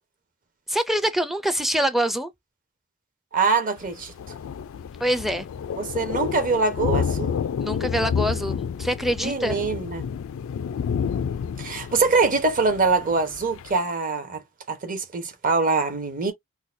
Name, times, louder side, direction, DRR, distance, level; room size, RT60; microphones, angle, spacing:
voice 1, 0.7-2.3 5.0-5.5 7.6-9.6, right 1 dB, ahead, 0.4 m, -25 dB
voice 2, 3.3-4.1 5.8-7.3 9.2-10.0 11.6-14.4 14.7-16.3, right 4 dB, 40° right, 1.0 m, -23 dB
Thunder, 3.8-13.8, left 7 dB, 65° left, 0.3 m, -30 dB
4.0 x 2.3 x 2.6 m
head